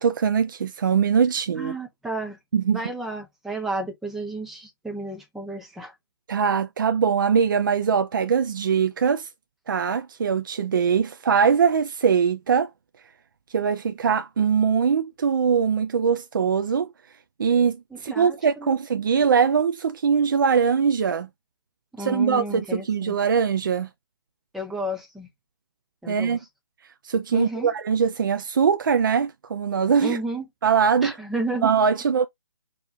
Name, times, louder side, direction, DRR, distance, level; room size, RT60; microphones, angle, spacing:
voice 1, 0.0-1.7 2.5-2.8 6.3-9.3 9.7-12.7 13.5-16.9 17.4-21.3 22.0-23.9 26.1-26.4 27.0-30.2 30.6-31.1 31.6-32.3, right 6 dB, 55° right, 0.5 m, -22 dB
voice 2, 1.5-2.4 2.7-5.9 17.9-18.8 21.9-23.2 24.5-25.3 26.0-26.4 27.3-27.7 30.0-30.4 31.0-31.7, right 2 dB, ahead, 0.9 m, -32 dB
4.6 x 2.6 x 3.2 m
figure-of-eight pair, 145°, 13 cm